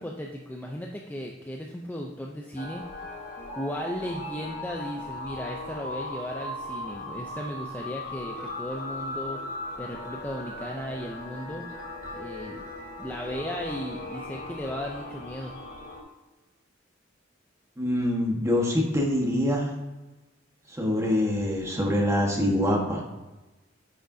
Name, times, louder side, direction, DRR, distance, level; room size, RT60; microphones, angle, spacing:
voice 1, 0.0-2.9 3.5-9.4 9.8-11.7 12.1-12.6 13.0-15.5, equal, 10° left, 0 dB, 0.5 m, -36 dB
sound 1, 2.6-16.0, left 1 dB, 45° left, 1.4 m, -38 dB
voice 2, 17.8-19.7 20.7-23.0, left 1 dB, 15° right, -1 dB, 1.3 m, -25 dB
9.5 x 6.5 x 2.7 m, 1.1 s
head